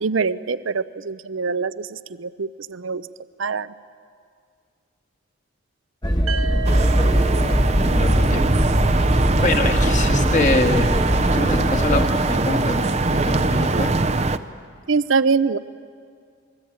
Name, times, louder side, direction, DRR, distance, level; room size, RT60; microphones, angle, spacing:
voice 1, 0.0-3.1 3.4-3.7 14.9-15.6, right 4 dB, 70° right, 15 dB, 0.6 m, -23 dB
sound 1, 6.0-12.1, equal, 20° left, 1.5 m, -21 dB
sound 2, 6.3-10.1, right 8 dB, 90° right, 0.9 m, -35 dB
sound 3, 6.7-14.4, right 2 dB, 30° right, 0.6 m, -22 dB
voice 2, 8.0-8.5 9.4-10.9 11.3-13.9, left 2 dB, 35° left, 5 dB, 1.7 m, -24 dB
27.5 x 20.5 x 8.8 m, 2.2 s
head